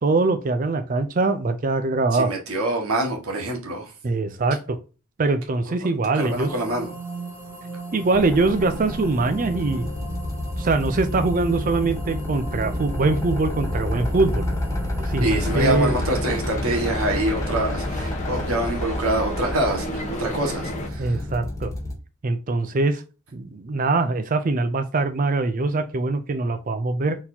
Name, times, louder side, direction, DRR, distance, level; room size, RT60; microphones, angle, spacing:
voice 1, 0.0-2.3 4.0-4.8 5.2-6.6 7.9-9.9 10.6-14.5 15.0-15.9 21.0-21.7 22.2-23.0 23.3-27.2, right 3 dB, 40° right, 0.4 m, -23 dB
voice 2, 2.1-3.9 6.1-6.9 15.2-21.2, right 1 dB, 85° right, 1.5 m, -25 dB
sound 1, 6.2-15.6, right 3 dB, 10° right, 1.1 m, -37 dB
sound 2, 8.1-21.9, left 1 dB, 15° left, 1.6 m, -29 dB
sound 3, 15.4-20.9, left 1 dB, 35° left, 0.9 m, -33 dB
4.2 x 4.1 x 2.7 m
head